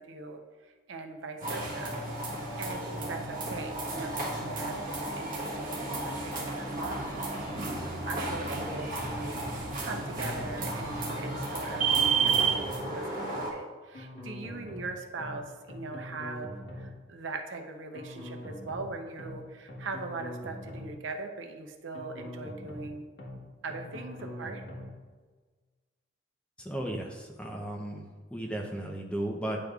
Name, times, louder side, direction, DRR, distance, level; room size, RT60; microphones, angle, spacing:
voice 1, 0.0-2.0 2.6-12.6 12.9-23.1 23.6-24.6, right 3 dB, 70° right, 5 dB, 0.6 m, -41 dB
sound 1, 1.4-13.5, right 4 dB, 45° right, 1.3 m, -32 dB
sound 2, 9.9-10.9 11.2-11.4 11.7-12.9 13.9-14.9 15.2-15.4 15.7-16.9 17.9-18.9 19.2-19.4 19.7-20.9 21.9-22.9 23.2-23.4 23.7-24.9, left 1 dB, 55° left, 1.4 m, -43 dB
voice 2, 26.6-29.6, right 1 dB, 5° left, 1 dB, 0.6 m, -35 dB
9.4 x 5.1 x 2.4 m, 1.4 s
head